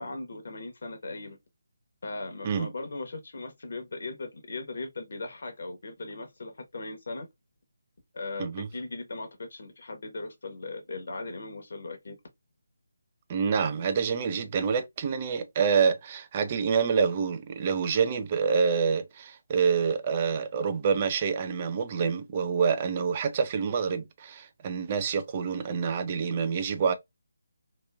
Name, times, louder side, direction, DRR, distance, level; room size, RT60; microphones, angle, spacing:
voice 1, 0.0-1.4 2.0-7.3 8.1-12.2, left 3 dB, 55° left, 1.0 m, -38 dB
voice 2, 13.3-26.9, right 6 dB, 30° right, 0.4 m, -27 dB
2.9 x 2.5 x 2.3 m
figure-of-eight pair, 155°, 0 cm